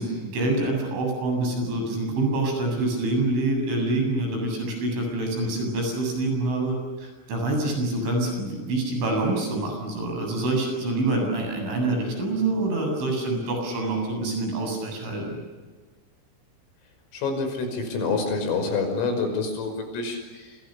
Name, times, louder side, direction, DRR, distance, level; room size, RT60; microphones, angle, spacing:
voice 1, 0.0-15.4, right 2 dB, 70° right, 3 dB, 10.5 m, -26 dB
voice 2, 17.1-20.6, left 4 dB, 85° left, 6 dB, 8.2 m, -27 dB
29.5 x 28.5 x 6.7 m, 1.4 s
omnidirectional pair, 5.8 m